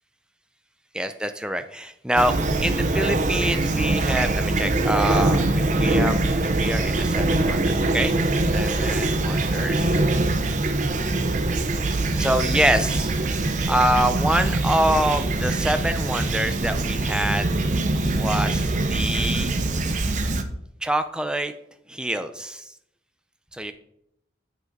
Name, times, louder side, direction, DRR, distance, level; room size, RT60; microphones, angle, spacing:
voice 1, 0.9-2.3 2.6-6.2 6.6-8.2 8.5-9.9 12.2-13.1 13.7-17.5 18.2-19.5 20.8-21.5 21.9-22.7 23.5-23.7, right 1 dB, 5° right, 9 dB, 0.5 m, -25 dB
Fowl / Chirp tweet, 2.2-20.4, right 2 dB, 40° right, 0.7 m, -23 dB
7.5 x 6.4 x 5.3 m, 0.76 s
head